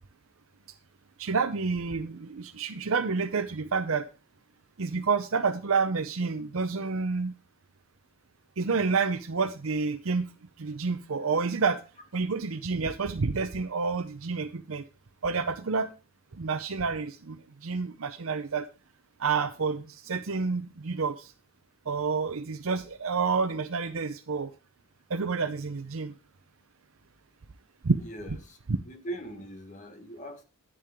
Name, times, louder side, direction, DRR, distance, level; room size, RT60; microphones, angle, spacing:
voice 1, 1.2-4.1 4.8-7.3 8.6-10.3 10.6-11.8 12.1-14.8 15.2-15.9 16.4-18.7 19.2-21.3 21.9-24.5 25.1-26.1 27.8-28.0, right 4 dB, 80° right, 0.7 m, -29 dB
voice 2, 28.0-30.4, right 1 dB, 35° left, 1.7 m, -41 dB
10.5 x 8.6 x 3.6 m
head